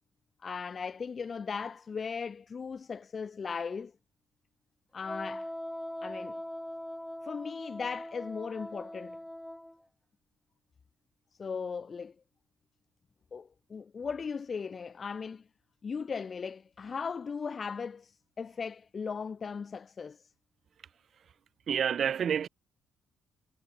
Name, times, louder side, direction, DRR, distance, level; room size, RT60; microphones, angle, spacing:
voice 1, 0.4-3.9 4.9-5.5 6.0-6.4 7.2-9.2 11.4-12.1 13.3-15.5 15.8-20.3, left 5 dB, 40° left, 0.8 m, -37 dB
Wind instrument woodwind instrument, 5.0-9.8, left 1 dB, 5° left, 4.8 m, -41 dB
voice 2, 21.7-22.5, right 8 dB, 55° right, 1.3 m, -28 dB
cardioid pair, 90°, 0 cm